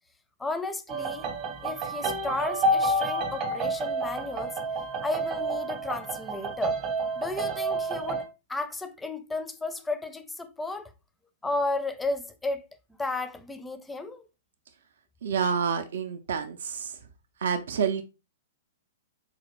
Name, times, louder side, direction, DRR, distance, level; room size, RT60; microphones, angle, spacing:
voice 1, 0.4-1.3 1.6-4.6 5.0-6.8 7.2-8.2 8.5-10.9 11.4-12.6 13.0-14.2, left 2 dB, 10° left, 0.4 m, -33 dB
sound 1, 0.9-8.2, right 2 dB, 35° right, 0.8 m, -29 dB
voice 2, 15.2-17.0 17.4-18.0, right 6 dB, 70° right, 0.4 m, -28 dB
4.1 x 2.5 x 3.0 m
hypercardioid pair, 120°, 0 cm